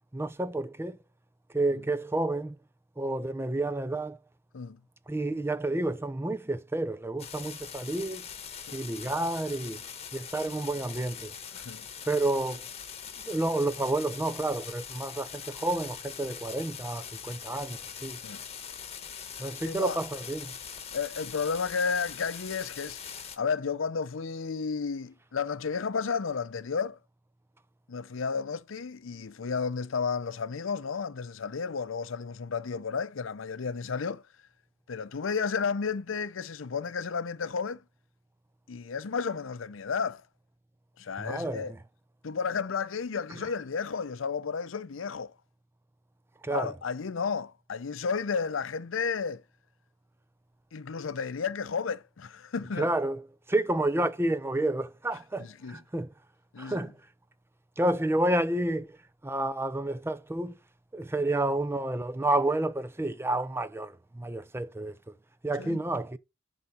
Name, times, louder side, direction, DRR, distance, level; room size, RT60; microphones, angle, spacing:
voice 1, 0.1-1.0 1.5-2.6 3.0-4.2 5.1-8.3 8.7-9.8 10.1-11.3 12.1-12.7 13.2-18.2 19.4-20.5 41.2-41.8 46.4-46.7 52.8-53.2 53.5-56.1 56.6-57.0 57.8-59.0 59.2-60.6 60.9-65.0 65.4-66.2, right 2 dB, 10° right, 0.5 m, -30 dB
sound 1, 7.2-23.4, left 7 dB, 35° left, 1.2 m, -42 dB
voice 2, 11.5-11.9 18.2-18.4 19.6-20.0 20.9-23.0 23.4-27.0 27.9-34.2 34.9-37.8 38.7-40.2 41.0-41.7 42.2-45.3 46.5-49.4 50.7-52.9 55.4-55.8 56.5-56.8 65.6-65.8, left 5 dB, 80° left, 0.6 m, -32 dB
10.5 x 4.0 x 5.9 m
head